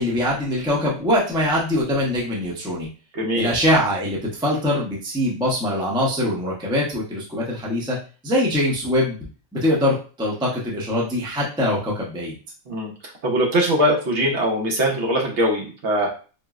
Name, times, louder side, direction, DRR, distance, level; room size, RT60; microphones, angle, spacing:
voice 1, 0.0-2.9 3.3-8.0 8.2-9.2 9.5-12.4, left 1 dB, 5° right, -4 dB, 0.5 m, -23 dB
voice 2, 3.1-3.5 12.7-12.9 13.2-16.1, equal, 60° right, -1 dB, 1.1 m, -21 dB
4.3 x 2.0 x 2.3 m, 0.36 s
omnidirectional pair, 1.4 m